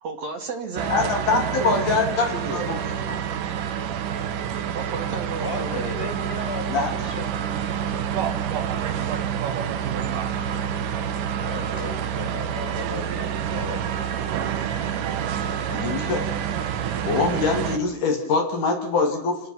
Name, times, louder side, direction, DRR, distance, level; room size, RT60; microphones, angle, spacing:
voice 1, 0.0-2.7 4.7-5.9, right 3 dB, 60° right, 2 dB, 2.9 m, -33 dB
sound 1, 0.8-17.8, right 8 dB, 85° right, 2.8 m, -28 dB
voice 2, 0.9-2.8 3.1-3.2 6.7-6.9 15.7-16.3 17.0-19.4, left 4 dB, 75° left, 1 dB, 4.2 m, -24 dB
voice 3, 5.4-7.2 11.4-14.1, left 3 dB, 10° left, 4 dB, 2.7 m, -35 dB
28.5 x 17.5 x 6.0 m, 0.79 s
omnidirectional pair, 3.7 m